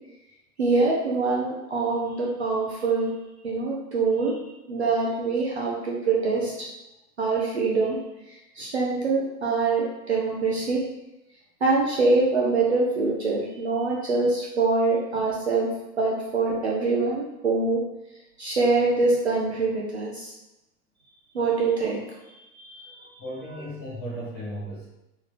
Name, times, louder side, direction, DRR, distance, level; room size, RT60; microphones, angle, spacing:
voice 1, 0.6-3.1 3.4-4.4 4.7-6.5 7.2-8.0 8.6-10.8 11.6-15.7 16.0-17.8 18.4-20.3 21.3-22.0 22.5-23.1, right 3 dB, 45° right, -3 dB, 0.5 m, -24 dB
voice 2, 23.2-24.8, equal, 10° left, -13 dB, 0.8 m, -35 dB
3.8 x 3.2 x 2.9 m, 0.96 s
hypercardioid pair, 180°, 49 cm